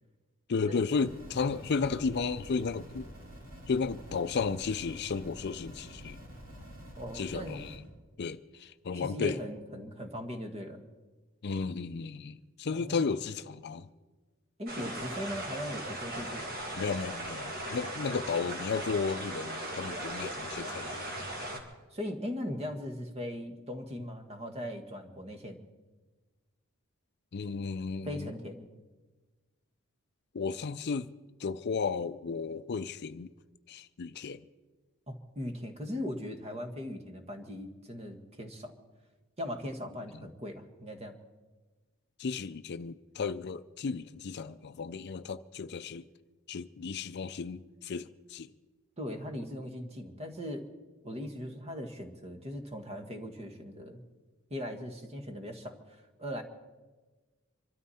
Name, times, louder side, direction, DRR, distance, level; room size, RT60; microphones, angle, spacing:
voice 1, 0.5-3.1 3.7-6.2 7.1-7.8 8.2-9.4 11.4-13.9 16.8-21.1 27.3-28.3 30.3-31.1 31.4-33.3 33.7-34.4 42.2-46.0 46.5-48.5, left 5 dB, 50° left, 0.5 m, -34 dB
sound 1, 0.9-7.8, equal, 85° right, 4.8 m, -48 dB
voice 2, 6.9-7.6 8.9-10.8 12.7-13.0 14.6-16.5 21.5-21.6 21.9-25.6 28.0-28.7 35.1-38.8 39.4-41.2 49.0-50.7 51.0-54.0 54.5-56.4, equal, 30° right, 1.5 m, -39 dB
sound 2, 14.7-21.6, right 1 dB, 45° right, 2.4 m, -38 dB
25.5 x 13.0 x 4.2 m
head